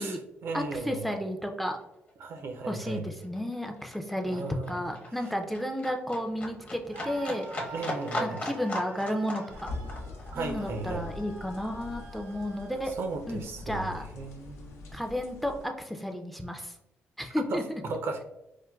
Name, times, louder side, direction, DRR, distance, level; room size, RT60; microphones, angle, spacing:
voice 1, 0.0-1.1 2.2-3.1 4.3-4.9 7.7-8.4 10.3-11.1 13.0-13.9 14.1-15.0 17.5-18.2, right 3 dB, 65° right, 0.5 m, -36 dB
voice 2, 0.5-1.8 2.7-7.7 8.2-9.4 10.3-12.9 13.3-13.4 13.7-14.1 14.9-16.7 17.2-17.6, equal, ahead, 0.4 m, -32 dB
Livestock farm animals working animals, 1.2-1.3 1.5-12.5 12.8-13.8 14.1-14.2, left 1 dB, 30° left, 0.7 m, -39 dB
Screaming, 6.9-12.8, right 3 dB, 90° right, 1.0 m, -46 dB
sound 1, 9.5-15.7, left 2 dB, 85° left, 0.5 m, -43 dB
4.4 x 2.1 x 2.2 m
cardioid pair, 100°, 5 cm